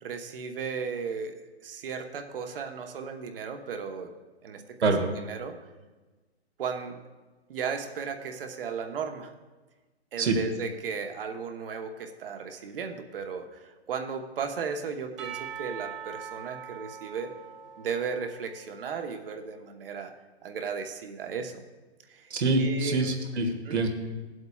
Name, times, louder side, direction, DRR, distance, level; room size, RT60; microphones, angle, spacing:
voice 1, 0.0-1.4 1.6-4.1 4.4-5.6 6.6-7.0 7.5-9.3 10.1-17.3 17.8-20.1 20.4-21.5 22.1-23.1 23.7-23.8, right 6 dB, 55° right, 5 dB, 1.2 m, -35 dB
Percussion / Church bell, 15.2-18.8, right 9 dB, 25° right, 0.8 m, -42 dB
voice 2, 22.3-23.9, right 3 dB, 80° right, 4 dB, 1.7 m, -25 dB
17.5 x 7.8 x 2.3 m, 1.2 s
hypercardioid pair, 145°, 33 cm